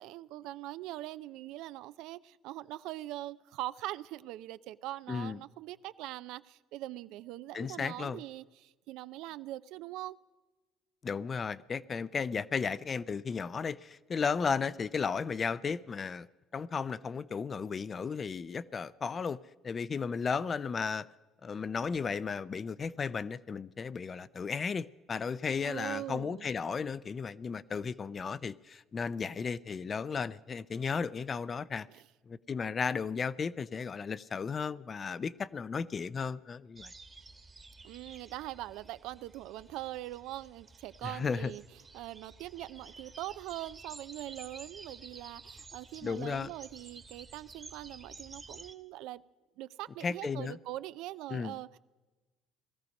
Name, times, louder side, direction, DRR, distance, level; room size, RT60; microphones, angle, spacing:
voice 1, 0.0-10.2 25.6-26.5 31.9-32.0 37.8-41.6 41.9-49.2 49.6-51.8, right 15 dB, 80° right, 0.4 m, -42 dB
voice 2, 5.1-5.4 7.5-8.2 11.0-16.3 16.5-19.4 19.6-21.1 21.4-31.9 32.3-36.9 41.0-41.5 46.0-46.5 50.0-50.6 51.3-51.6, left 5 dB, 35° left, 0.4 m, -34 dB
sound 1, 36.8-48.7, right 3 dB, 20° right, 1.2 m, -52 dB
19.0 x 13.5 x 5.3 m
cardioid pair, 110°, 0 cm